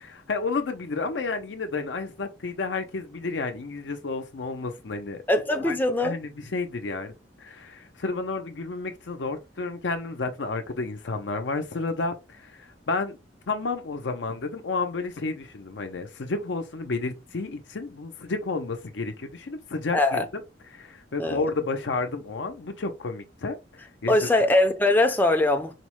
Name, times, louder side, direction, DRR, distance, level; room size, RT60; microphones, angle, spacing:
voice 1, 0.0-5.2 5.6-5.8 6.0-7.1 7.4-12.1 12.4-13.2 13.5-20.4 20.7-23.6 24.0-24.3, left 3 dB, 85° left, 0.6 m, -31 dB
voice 2, 5.3-6.1 19.9-20.3 21.2-21.4 24.1-25.7, left 2 dB, 10° left, 0.4 m, -21 dB
4.2 x 2.1 x 3.0 m
head